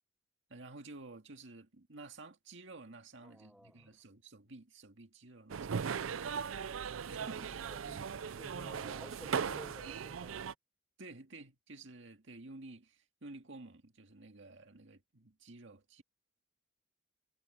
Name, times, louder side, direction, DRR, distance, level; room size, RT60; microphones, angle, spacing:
voice 1, 0.5-5.9 7.1-7.5 11.0-16.0, right 2 dB, 65° right, 2.1 m, -52 dB
voice 2, 3.2-3.9 7.2-10.4, equal, ahead, 1.1 m, -54 dB
sound 1, 5.5-10.5, right 6 dB, 90° right, 0.5 m, -38 dB
head